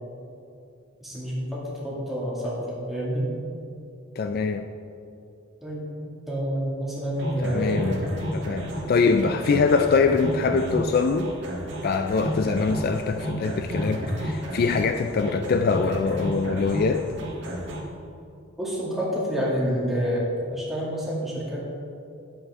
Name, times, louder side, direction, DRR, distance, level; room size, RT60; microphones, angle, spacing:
voice 1, 1.0-3.3 5.6-5.9 6.3-7.8 18.6-20.3 20.5-21.6, equal, ahead, -7 dB, 2.1 m, -28 dB
voice 2, 4.2-4.7 7.4-8.0 8.3-11.3 11.8-17.1, left 4 dB, 50° left, 7 dB, 0.3 m, -23 dB
sound 1, 7.2-17.8, equal, 60° right, 1.7 m, -32 dB
9.3 x 8.0 x 3.6 m, 2.5 s
head